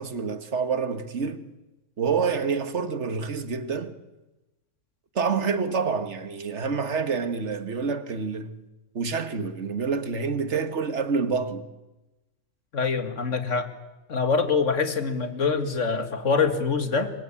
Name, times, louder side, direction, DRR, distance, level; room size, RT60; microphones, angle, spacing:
voice 1, 0.0-1.5 2.0-3.9 5.2-8.6 9.0-11.7, right 5 dB, 55° right, 1.8 m, -27 dB
voice 2, 12.7-13.7 14.1-17.1, left 5 dB, 60° left, 2.3 m, -24 dB
28.5 x 23.5 x 8.8 m
omnidirectional pair, 1.4 m